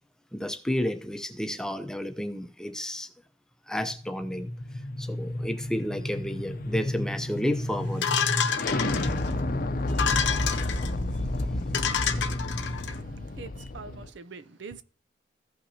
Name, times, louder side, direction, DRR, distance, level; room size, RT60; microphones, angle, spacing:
voice 1, 0.3-3.1 3.7-4.5 5.0-8.1 9.9-10.2, left 1 dB, 5° left, 0.7 m, -31 dB
sound 1, 3.9-14.1, left 1 dB, 50° left, 0.6 m, -31 dB
sound 2, 8.0-9.3 9.9-10.9 11.4-11.5 11.7-12.9, left 7 dB, 90° left, 0.9 m, -28 dB
voice 2, 12.8-14.8, right 4 dB, 90° right, 0.6 m, -44 dB
15.5 x 5.7 x 2.8 m
head